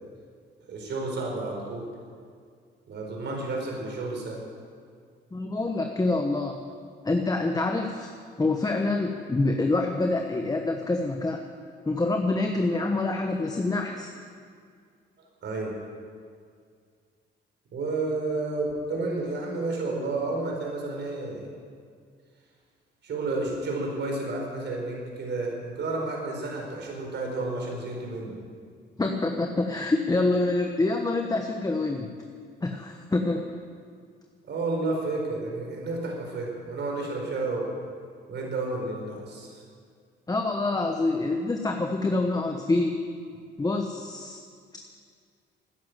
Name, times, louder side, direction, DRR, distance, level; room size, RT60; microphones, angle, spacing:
voice 1, 0.7-1.9 2.9-4.4 15.4-15.7 17.7-21.5 23.0-28.4 34.5-37.7 38.3-39.6, right 2 dB, 60° right, 0 dB, 4.8 m, -31 dB
voice 2, 5.3-6.7 7.0-8.1 8.4-11.4 11.8-14.1 29.0-32.1 32.6-33.5 40.3-43.1 43.6-44.4, left 2 dB, 20° left, 4 dB, 1.2 m, -26 dB
13.5 x 10.5 x 9.5 m, 2.1 s
cardioid pair, 90°, 20 cm